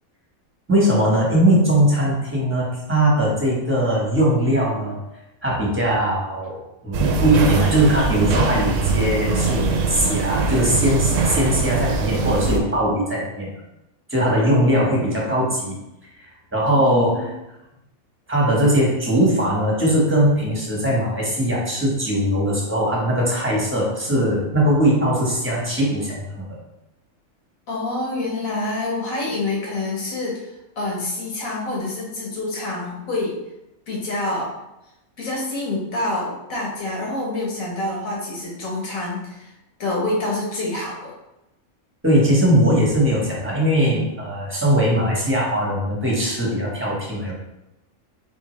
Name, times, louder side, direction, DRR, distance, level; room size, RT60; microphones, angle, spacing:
voice 1, 0.7-5.0 5.4-13.5 14.1-15.8 16.5-17.3 18.3-26.5 42.0-47.3, right 1 dB, 10° right, -4 dB, 1.1 m, -20 dB
sound 1, 6.9-12.6, right 4 dB, 70° right, 0.9 m, -22 dB
voice 2, 16.7-17.3 27.7-30.4 30.8-33.4 33.9-34.5 35.2-39.5 39.8-41.1, left 2 dB, 75° left, -3 dB, 1.6 m, -27 dB
4.4 x 3.6 x 3.1 m, 0.90 s
omnidirectional pair, 1.4 m